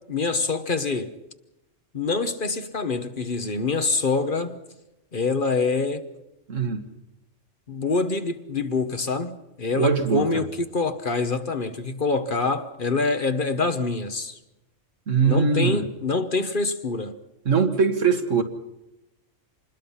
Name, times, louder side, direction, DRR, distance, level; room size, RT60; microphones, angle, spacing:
voice 1, 0.1-1.2 1.9-4.6 5.1-6.0 7.7-14.4 15.2-17.2, left 3 dB, 45° left, 1.3 m, -25 dB
voice 2, 6.5-6.8 9.7-10.3 15.1-15.8 17.5-18.4, right 5 dB, 75° right, 2.0 m, -21 dB
26.5 x 21.0 x 5.7 m
omnidirectional pair, 1.3 m